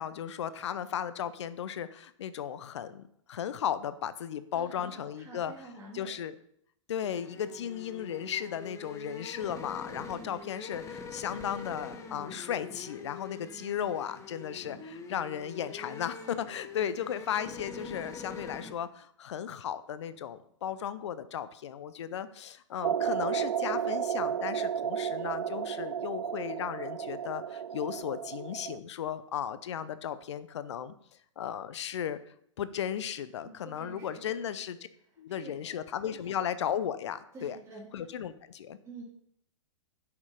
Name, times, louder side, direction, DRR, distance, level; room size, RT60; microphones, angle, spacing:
voice 1, 0.0-5.5 5.9-6.4 6.9-30.9 31.4-32.2 32.6-34.8 35.2-37.6 37.9-38.8, left 9 dB, 60° left, 14 dB, 0.8 m, -35 dB
voice 2, 4.5-6.2 33.4-34.5 35.3-35.7 36.1-36.3 37.3-37.9 38.8-39.0, right 2 dB, 15° right, -4 dB, 2.9 m, -48 dB
sound 1, 7.0-18.7, left 4 dB, 15° left, 1.4 m, -44 dB
sound 2, 22.8-28.8, right 8 dB, 75° right, 0.4 m, -33 dB
8.6 x 6.8 x 5.6 m, 0.70 s
figure-of-eight pair, 110°, 17 cm